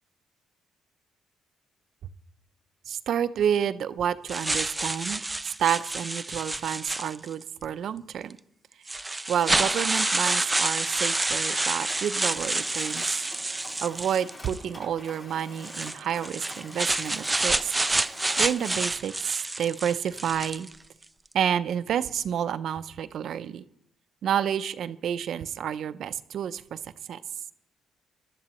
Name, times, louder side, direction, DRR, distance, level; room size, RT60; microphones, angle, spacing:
voice 1, 2.9-8.4 8.9-9.0 9.3-13.2 13.8-17.7 18.4-20.7 21.3-23.6 24.2-27.2, right 9 dB, 65° right, 13 dB, 0.6 m, -29 dB
sound 1, 4.3-7.5 8.3-8.4 8.9-14.6 15.6-20.8, right 2 dB, 15° right, 0.4 m, -28 dB
Mechanisms, 11.9-19.0, left 1 dB, 35° left, 2.3 m, -46 dB
20.0 x 12.0 x 3.0 m, 0.78 s
cardioid pair, 90°, 0 cm